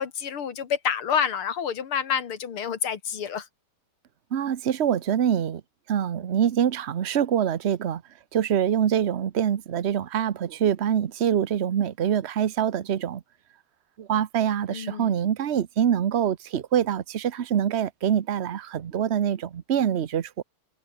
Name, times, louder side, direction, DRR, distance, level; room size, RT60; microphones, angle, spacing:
voice 1, 0.0-3.5 14.7-15.1, left 8 dB, 75° left, 2.7 m, -28 dB
voice 2, 4.3-5.6 5.9-8.0 8.3-13.2 14.0-20.3, right 9 dB, 75° right, 0.6 m, -25 dB
omnidirectional pair, 2.4 m